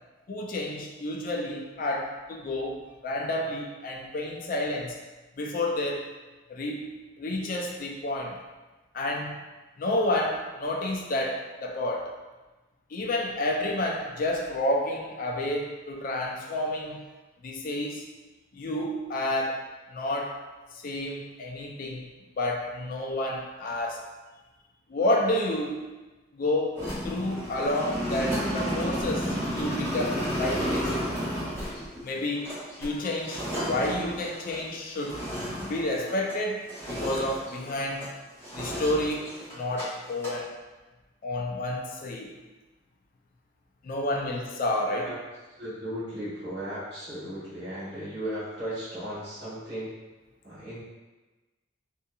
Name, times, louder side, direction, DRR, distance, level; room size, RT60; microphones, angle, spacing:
voice 1, 0.3-5.0 5.4-6.1 6.5-8.4 8.9-9.3 9.8-12.1 12.9-17.0 17.4-18.1 18.5-20.4 20.7-22.1 22.4-24.1 24.9-25.8 26.3-31.0 32.0-35.2 35.7-38.1 38.5-40.6 41.2-42.3 43.8-45.1, left 1 dB, 45° left, 1 dB, 0.3 m, -30 dB
sound 1, 26.7-36.4 36.7-38.1 38.4-39.8 40.1-40.4, equal, 10° left, 1.0 m, -32 dB
voice 2, 45.5-49.9 50.4-50.8, equal, 60° right, -10 dB, 1.2 m, -36 dB
2.6 x 2.6 x 2.3 m, 1.2 s
head